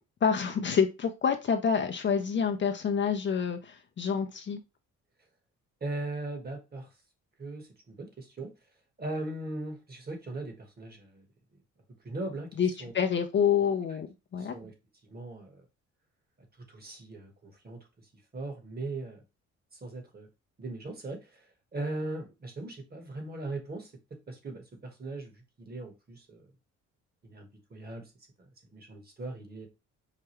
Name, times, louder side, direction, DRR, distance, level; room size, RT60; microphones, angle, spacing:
voice 1, 0.2-4.6 12.6-14.1 14.3-14.5, left 7 dB, 40° left, 0.5 m, -27 dB
voice 2, 5.8-6.9 7.4-8.5 9.0-11.3 12.0-12.9 14.4-14.7 15.1-15.6 16.7-17.8 18.3-19.2 19.7-20.3 20.6-21.5 21.7-23.9 24.3-26.5 27.2-28.1 28.7-29.7, right 2 dB, 30° right, 1.3 m, -39 dB
4.8 x 2.2 x 3.0 m
cardioid pair, 90°, 30 cm